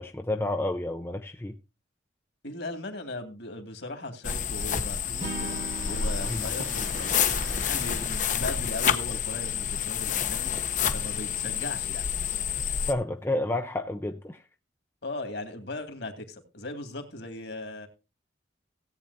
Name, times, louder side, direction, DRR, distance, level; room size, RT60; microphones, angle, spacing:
voice 1, 0.0-1.6 6.3-6.4 12.9-14.4, left 1 dB, 10° left, 0.5 m, -30 dB
voice 2, 2.4-12.1 15.0-17.9, left 2 dB, 60° left, 2.3 m, -38 dB
sound 1, 4.2-12.9, left 7 dB, 40° left, 0.8 m, -29 dB
sound 2, 5.1-10.6, right 2 dB, 80° right, 2.3 m, -45 dB
Acoustic guitar / Strum, 5.2-8.5, right 2 dB, 40° right, 1.4 m, -41 dB
17.0 x 8.8 x 2.7 m
head